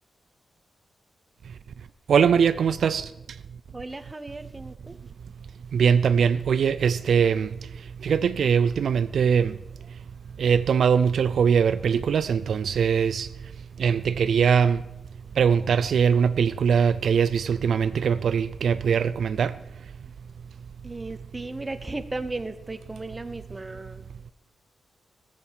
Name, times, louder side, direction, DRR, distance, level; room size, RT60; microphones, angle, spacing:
voice 1, 2.1-3.1 5.7-7.5 8.0-9.5 10.4-13.3 13.8-14.8 15.4-19.5, right 7 dB, 75° right, 0.5 m, -21 dB
voice 2, 3.7-5.0 20.8-24.0, right 2 dB, 20° right, 0.9 m, -35 dB
17.5 x 7.5 x 6.2 m
wide cardioid pair, 135°, 0 cm